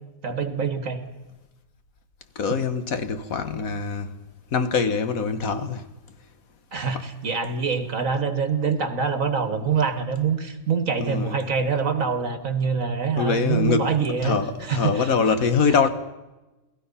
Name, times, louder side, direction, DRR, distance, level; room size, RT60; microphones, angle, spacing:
voice 1, 0.2-1.0 6.7-15.1, right 6 dB, 70° right, 2.2 m, -25 dB
voice 2, 2.3-4.1 4.5-5.9 6.9-7.0 11.0-11.4 13.2-13.9 14.2-15.9, left 5 dB, 75° left, 1.7 m, -23 dB
29.0 x 18.5 x 5.7 m
omnidirectional pair, 1.5 m